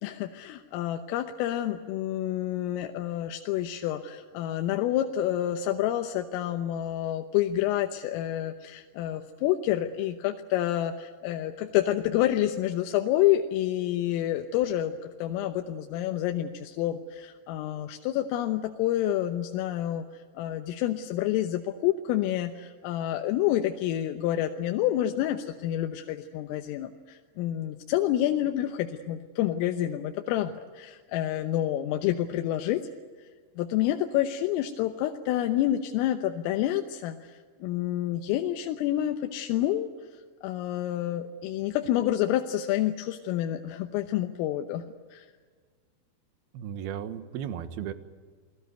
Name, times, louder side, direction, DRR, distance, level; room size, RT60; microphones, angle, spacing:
voice 1, 0.0-32.9 33.6-39.9 40.4-44.8 45.1-45.3, left 12 dB, 90° left, 6 dB, 3.7 m, -28 dB
voice 2, 46.5-47.9, right 9 dB, 65° right, 11 dB, 2.8 m, -35 dB
29.5 x 20.0 x 9.2 m, 1.5 s
omnidirectional pair, 5.8 m